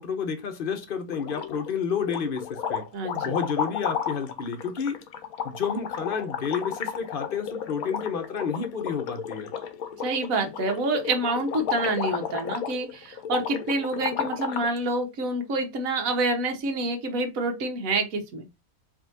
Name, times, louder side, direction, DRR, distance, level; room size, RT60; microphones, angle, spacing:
voice 1, 0.0-2.9 3.2-5.0 5.4-9.5, left 6 dB, 45° left, 0.8 m, -30 dB
sound 1, 1.1-1.7 2.0-14.8, left 8 dB, 80° left, 1.1 m, -33 dB
voice 2, 2.9-3.3 10.0-18.5, right 2 dB, 70° right, 1.3 m, -27 dB
4.8 x 2.7 x 2.7 m
omnidirectional pair, 1.5 m